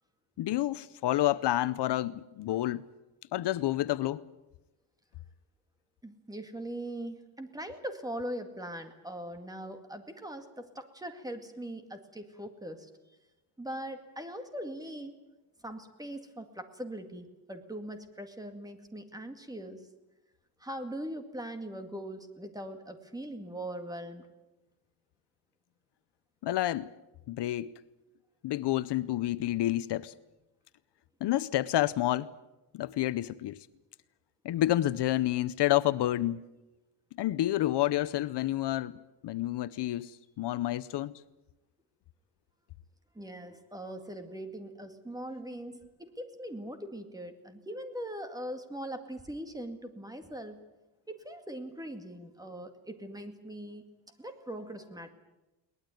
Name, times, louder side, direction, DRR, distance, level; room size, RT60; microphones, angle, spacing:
voice 1, 0.4-2.8 3.3-4.2 26.4-26.9 27.3-27.7 28.4-30.1 31.2-32.3 32.7-33.6 34.4-36.4 37.2-38.9 39.2-41.2, left 14 dB, 65° left, 0.7 m, -29 dB
voice 2, 6.0-12.9 13.6-15.2 15.6-19.8 20.6-24.3 43.1-50.6 51.1-53.8 54.2-55.1, right 1 dB, 10° right, 2.0 m, -41 dB
22.5 x 19.0 x 9.1 m
cardioid pair, 160°, 45 cm